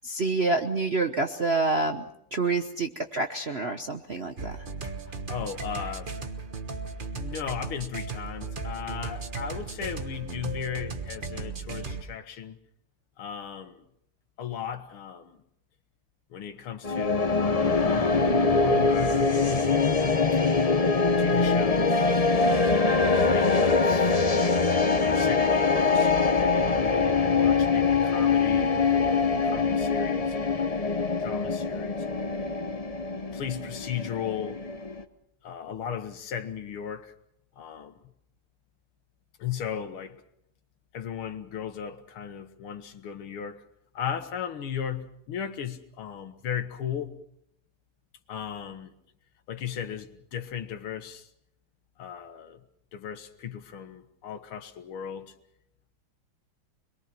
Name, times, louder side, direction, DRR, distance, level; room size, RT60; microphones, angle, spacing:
voice 1, 0.0-2.0 2.3-4.5, right 3 dB, 45° right, 0.8 m, -27 dB
sound 1, 4.4-12.0, right 4 dB, 30° right, 1.1 m, -36 dB
voice 2, 5.3-6.1 7.1-12.6 13.2-13.8 14.4-15.4 16.3-17.3 17.8-19.3 20.6-22.1 23.2-24.1 24.9-32.5 33.3-34.6 35.4-37.1 37.6-38.0 39.4-40.2 40.9-43.6 43.9-47.2 48.3-48.9 49.5-51.3 52.0-52.6 52.9-55.3, left 8 dB, 75° left, 2.3 m, -36 dB
sound 2, 16.8-35.0, left 4 dB, 45° left, 0.4 m, -23 dB
26.0 x 22.0 x 6.0 m
omnidirectional pair, 2.4 m